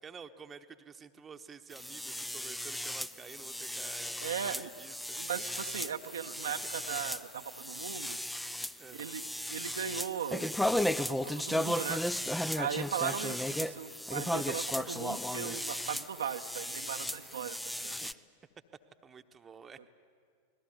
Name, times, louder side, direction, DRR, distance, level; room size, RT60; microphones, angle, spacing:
voice 1, 0.0-5.6 6.5-6.7 7.7-7.9 8.8-9.2 13.0-13.1 18.0-18.3 19.0-19.9, right 6 dB, 20° right, 7 dB, 1.1 m, -51 dB
sound 1, 1.7-18.1, left 1 dB, 5° left, 0.6 m, -35 dB
voice 2, 4.2-4.7 5.2-8.2 9.0-9.2 9.5-10.5 11.1-12.0 12.6-18.0, right 8 dB, 65° right, 6 dB, 0.9 m, -38 dB
28.0 x 20.0 x 9.6 m, 2.1 s
figure-of-eight pair, 90°, 0 cm